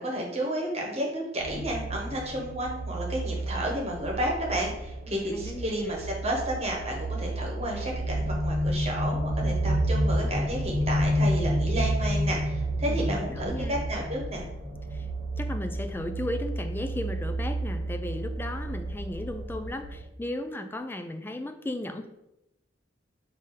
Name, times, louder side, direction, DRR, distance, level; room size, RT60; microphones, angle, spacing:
voice 1, 0.0-14.5, right 1 dB, 35° right, -1 dB, 1.2 m, -31 dB
sound 1, 1.4-20.0, right 1 dB, 85° right, 0.9 m, -30 dB
voice 2, 5.1-5.9 12.9-13.8 14.9-15.1 15.4-22.1, left 1 dB, 10° left, 7 dB, 0.3 m, -35 dB
4.8 x 2.7 x 3.8 m, 0.89 s
head